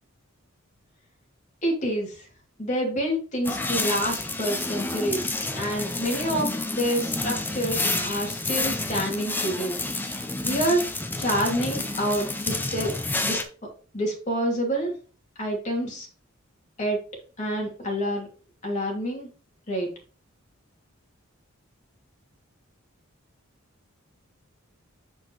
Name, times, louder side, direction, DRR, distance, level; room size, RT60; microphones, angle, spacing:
voice 1, 1.6-2.2 2.6-10.1 10.4-10.9 11.2-12.9 13.2-13.4 13.9-15.0 15.4-16.1 16.8-17.0 17.4-18.3 18.6-19.3 19.7-19.9, equal, 35° left, -2 dB, 2.9 m, -27 dB
sound 1, 3.4-13.4, left 2 dB, 10° left, 0.7 m, -29 dB
7.3 x 6.1 x 3.2 m, 0.37 s
head